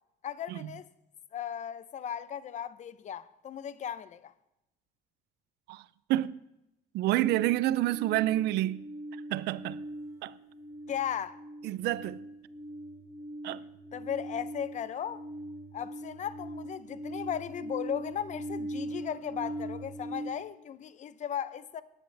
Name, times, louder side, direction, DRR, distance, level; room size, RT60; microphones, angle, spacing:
voice 1, 0.2-0.9 1.3-4.3 10.9-11.4 13.9-15.2 15.7-21.8, left 9 dB, 45° left, 0.7 m, -36 dB
voice 2, 6.9-8.9 9.3-9.8 10.2-10.3 11.6-12.2 13.4-13.6, right 15 dB, 80° right, 0.5 m, -28 dB
sound 1, 7.2-20.3, right 1 dB, 20° right, 2.6 m, -41 dB
19.0 x 10.0 x 3.4 m
cardioid pair, 110°, 17 cm